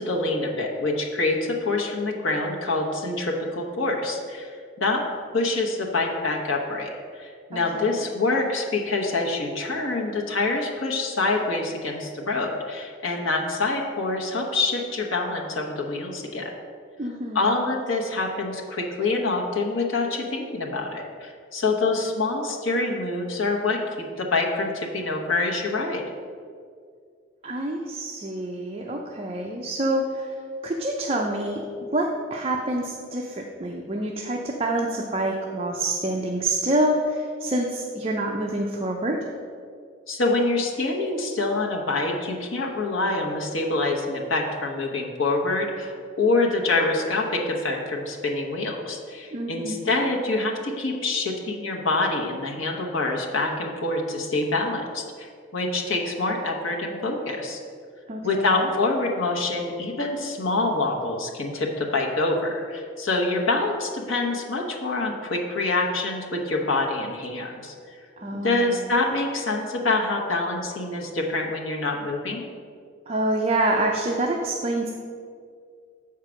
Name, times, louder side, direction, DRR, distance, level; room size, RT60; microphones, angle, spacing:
voice 1, 0.0-16.5 17.3-26.0 40.1-57.6 58.2-68.0 68.3-72.4, left 2 dB, 85° left, 0 dB, 1.1 m, -26 dB
voice 2, 7.5-8.0 17.0-17.6 27.4-30.4 30.6-31.6 31.9-39.2 49.3-49.9 58.1-58.5 68.2-68.8 73.1-74.9, right 1 dB, 30° right, 0 dB, 0.5 m, -27 dB
7.3 x 4.7 x 6.3 m, 2.1 s
head